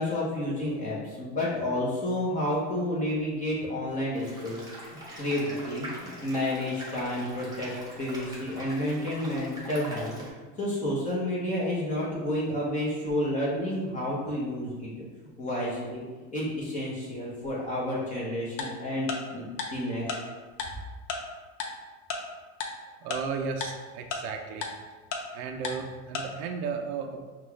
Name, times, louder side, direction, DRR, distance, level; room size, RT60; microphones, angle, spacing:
voice 1, 0.0-4.6 5.2-10.1 10.6-14.9 15.4-16.0 16.3-19.4 19.7-20.2, left 1 dB, 20° left, -7 dB, 0.9 m, -30 dB
sound 1, 4.1-10.3, right 1 dB, 10° right, 0.8 m, -43 dB
Tick-tock, 18.6-18.7 19.1-19.2 19.6-19.7 20.1-20.2 20.6-20.7 21.1-21.2 21.6-21.7 22.1-22.2 22.6-22.7 23.1-23.2 23.6-23.7 24.1-24.2 24.6-24.7 25.1-25.2 25.6-25.7 26.1-26.2, left 5 dB, 50° left, 0.7 m, -31 dB
voice 2, 23.0-24.7 25.3-27.3, right 5 dB, 55° right, 4 dB, 0.5 m, -34 dB
5.4 x 2.4 x 3.2 m, 1.4 s
supercardioid pair, 145°, 39 cm